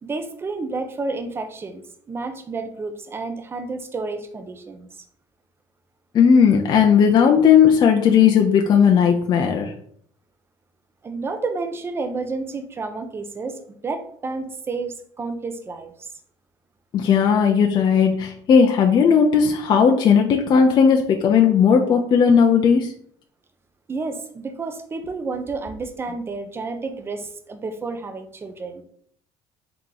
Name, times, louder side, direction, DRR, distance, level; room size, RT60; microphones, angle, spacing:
voice 1, 0.0-4.9 11.0-15.9 23.9-28.8, right 3 dB, 20° right, 8 dB, 0.5 m, -30 dB
voice 2, 6.1-9.7 16.9-22.9, left 7 dB, 40° left, 2 dB, 0.4 m, -16 dB
3.6 x 2.9 x 3.8 m, 0.63 s
cardioid pair, 125°, 11 cm